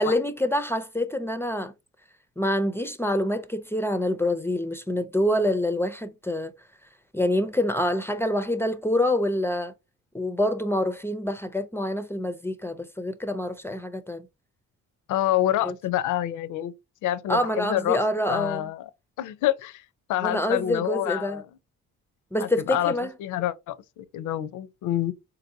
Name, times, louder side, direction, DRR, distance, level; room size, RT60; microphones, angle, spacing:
voice 1, 0.0-1.7 2.4-6.5 7.1-9.7 10.1-14.3 15.6-15.8 17.3-18.7 20.2-21.4 22.3-23.1, left 1 dB, 10° left, 0.4 m, -26 dB
voice 2, 15.1-16.7 17.0-18.0 18.3-18.9 19.2-19.8 20.1-21.4 22.4-22.9 23.2-25.1, left 13 dB, 80° left, 0.5 m, -27 dB
4.0 x 2.7 x 2.6 m
cardioid pair, 90°, 30 cm